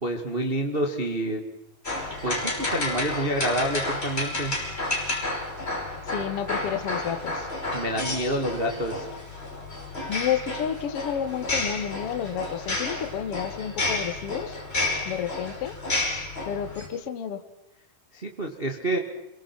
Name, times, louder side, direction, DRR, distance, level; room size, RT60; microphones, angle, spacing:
voice 1, 0.0-1.4 2.2-4.5 7.7-9.0 18.1-19.0, right 1 dB, 70° right, 2 dB, 0.5 m, -28 dB
sound 1, 1.8-16.9, left 2 dB, 15° left, 5.6 m, -31 dB
voice 2, 6.1-7.5 10.1-14.6 15.0-15.7 16.5-17.4, left 9 dB, 75° left, 9 dB, 1.3 m, -30 dB
29.0 x 23.0 x 6.1 m, 0.93 s
omnidirectional pair, 4.9 m